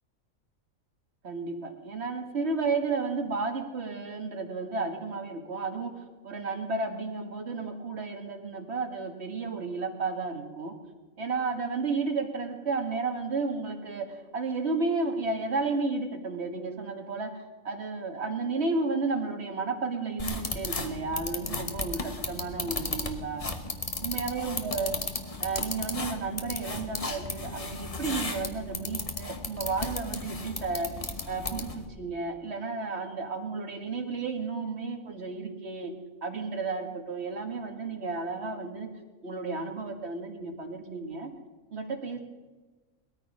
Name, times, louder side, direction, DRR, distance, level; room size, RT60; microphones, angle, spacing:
voice 1, 1.2-10.7 11.2-23.5 24.0-25.0 25.4-30.9 31.3-35.9 36.2-38.9 39.2-41.3 41.7-42.2, right 4 dB, 50° right, 4 dB, 1.9 m, -32 dB
sound 1, 20.2-31.9, left 3 dB, 30° left, 1.2 m, -35 dB
19.5 x 13.5 x 5.3 m, 1.3 s
omnidirectional pair, 1.4 m